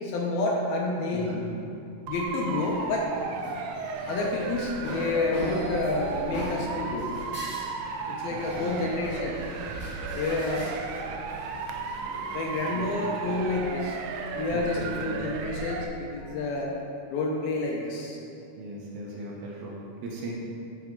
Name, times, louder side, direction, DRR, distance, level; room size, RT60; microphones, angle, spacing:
voice 1, 0.0-1.4 2.1-3.1 4.1-7.1 8.1-9.4 10.1-10.6 12.3-14.0 14.4-16.8 17.1-18.2, left 2 dB, 75° left, -1 dB, 2.4 m, -29 dB
voice 2, 1.1-1.5 8.3-8.8 12.7-13.1 14.5-15.4 18.6-20.3, right 1 dB, 70° right, -4 dB, 2.7 m, -39 dB
Motor vehicle (road) / Siren, 2.1-15.9, right 5 dB, 85° right, 2.0 m, -35 dB
sound 1, 2.3-13.8, equal, 40° left, 2.7 m, -42 dB
11.5 x 6.0 x 3.8 m, 2.6 s
omnidirectional pair, 4.8 m